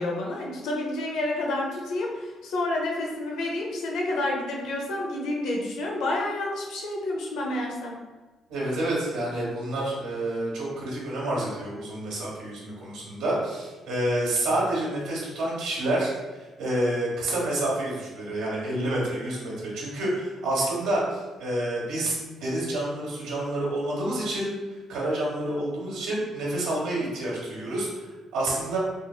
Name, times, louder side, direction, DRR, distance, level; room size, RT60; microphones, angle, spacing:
voice 1, 0.0-8.0, left 2 dB, 80° left, -1 dB, 0.7 m, -29 dB
voice 2, 8.5-16.1 16.6-24.5 24.9-28.8, right 1 dB, 85° right, -5 dB, 1.2 m, -28 dB
3.6 x 3.2 x 2.2 m, 1.2 s
cardioid pair, 80°, 0 cm